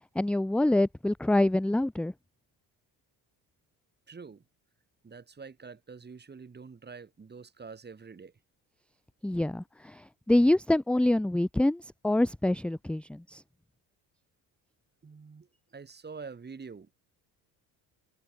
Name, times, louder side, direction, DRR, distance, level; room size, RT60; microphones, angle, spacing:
voice 1, 0.2-2.1 9.2-13.4, left 1 dB, 5° left, 0.6 m, -26 dB
voice 2, 4.1-4.4 5.0-8.3 15.0-16.9, right 5 dB, 25° right, 3.5 m, -46 dB
cardioid pair, 95°, 37 cm